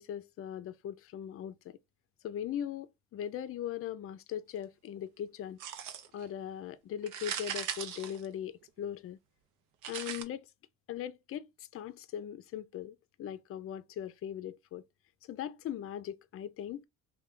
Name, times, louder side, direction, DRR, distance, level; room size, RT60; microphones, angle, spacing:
voice 1, 0.0-1.8 2.2-5.6 6.1-9.2 9.9-10.4 10.9-11.5 11.7-14.8 15.3-16.8, left 10 dB, 50° left, 0.4 m, -39 dB
sound 1, 5.6-6.3 7.0-8.8 9.8-10.2, right 9 dB, 80° right, 0.6 m, -39 dB
3.1 x 2.2 x 3.6 m
cardioid pair, 90°, 30 cm